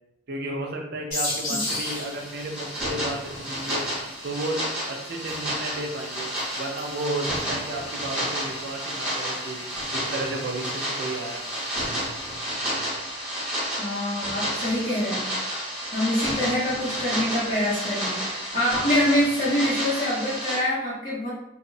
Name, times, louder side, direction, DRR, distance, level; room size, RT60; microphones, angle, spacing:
voice 1, 0.3-3.8 4.2-4.6 4.9-9.6 9.9-11.4, right 2 dB, 50° right, 1 dB, 0.4 m, -33 dB
sound 1, 1.1-12.5, left 2 dB, 75° left, 1.0 m, -38 dB
sound 2, 1.6-20.6, equal, 5° right, 0.6 m, -31 dB
voice 2, 13.8-15.4 15.9-21.3, left 1 dB, 40° left, -9 dB, 0.6 m, -25 dB
2.7 x 2.0 x 2.6 m, 0.86 s
head